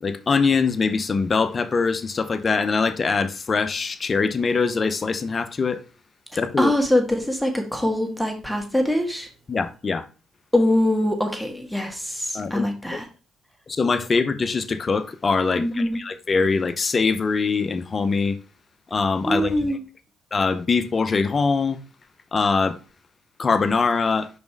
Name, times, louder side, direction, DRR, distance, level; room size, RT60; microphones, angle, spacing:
voice 1, 0.0-5.8 6.4-6.7 9.5-10.0 12.3-13.0 13.7-18.4 18.9-19.7 20.3-21.8 22.3-22.8 23.4-24.3, left 4 dB, 40° left, 0.8 m, -23 dB
voice 2, 6.6-9.3 10.5-13.1 15.6-16.0 19.3-19.8, left 1 dB, ahead, 1.6 m, -23 dB
5.2 x 4.3 x 4.6 m
hypercardioid pair, 55°, 0 cm